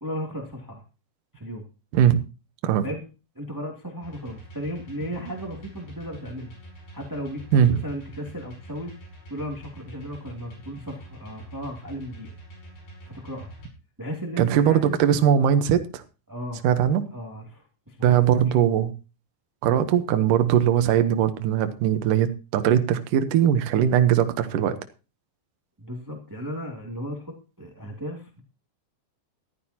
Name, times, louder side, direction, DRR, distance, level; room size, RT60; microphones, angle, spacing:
voice 1, 0.0-0.8 1.3-1.6 2.8-3.0 3.3-6.5 6.9-9.0 9.3-12.3 13.0-13.5 14.0-15.0 16.3-16.6 17.1-18.5 25.8-28.4, equal, 10° right, 2 dB, 0.9 m, -35 dB
sound 1, 4.0-13.7, right 1 dB, 75° left, 8.3 m, -45 dB
voice 2, 14.4-16.0 16.6-17.1 18.0-18.9 19.6-24.8, right 9 dB, 75° right, 8 dB, 2.0 m, -20 dB
14.0 x 14.0 x 2.9 m, 0.33 s
omnidirectional pair, 5.1 m